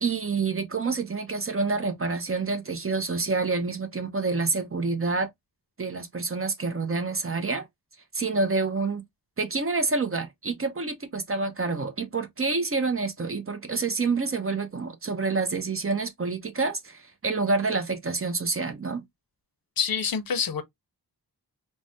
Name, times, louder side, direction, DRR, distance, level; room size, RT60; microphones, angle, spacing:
voice 1, 0.0-5.3 5.8-7.7 8.1-9.0 9.4-19.0, right 4 dB, 30° right, 0.6 m, -28 dB
voice 2, 19.8-20.6, left 6 dB, 55° left, 0.6 m, -26 dB
3.2 x 2.1 x 2.5 m
wide cardioid pair, 75°, 41 cm